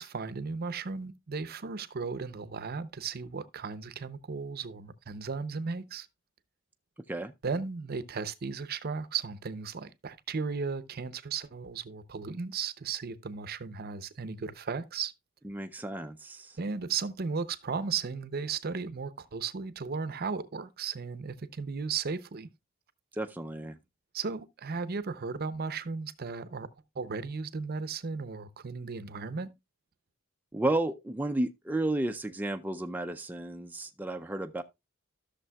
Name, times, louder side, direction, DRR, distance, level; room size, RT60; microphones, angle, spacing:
voice 1, 0.0-6.1 7.4-15.1 16.6-22.5 24.1-26.7 27.0-29.5, right 5 dB, 50° right, 0.6 m, -35 dB
voice 2, 15.4-16.6 23.1-23.8 30.5-34.6, right 1 dB, 10° right, 0.4 m, -32 dB
13.5 x 6.6 x 2.3 m
head